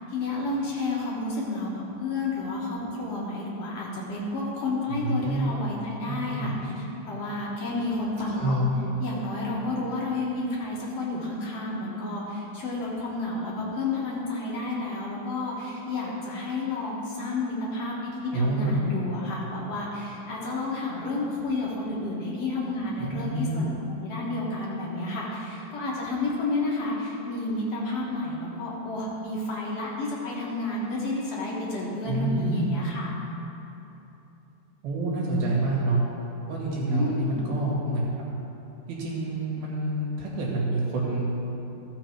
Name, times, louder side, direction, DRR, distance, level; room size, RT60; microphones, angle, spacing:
voice 1, 0.1-8.6 9.0-23.7 24.0-33.1 36.9-37.4, left 2 dB, 55° left, -5 dB, 1.9 m, -31 dB
voice 2, 5.0-5.5 6.2-6.5 8.4-8.7 18.3-18.7 23.0-23.7 32.1-32.8 34.8-36.0 36.5-38.1 38.9-41.4, right 2 dB, 75° right, -4 dB, 3.7 m, -27 dB
13.5 x 6.8 x 4.5 m, 3.0 s
omnidirectional pair, 4.3 m